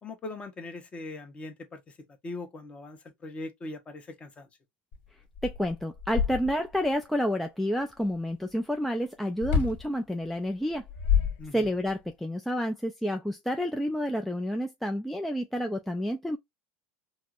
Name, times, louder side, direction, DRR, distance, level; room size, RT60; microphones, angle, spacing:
voice 1, 0.0-2.0 2.2-4.5 11.4-11.7, left 2 dB, 20° left, 0.9 m, -41 dB
sound 1, 4.9-5.0 5.3-6.9 9.4-9.9 10.7-11.9, left 7 dB, 60° left, 1.6 m, -28 dB
voice 2, 5.4-10.8 11.5-16.4, equal, ahead, 0.3 m, -29 dB
4.3 x 2.0 x 2.4 m
supercardioid pair, 130°, 5 cm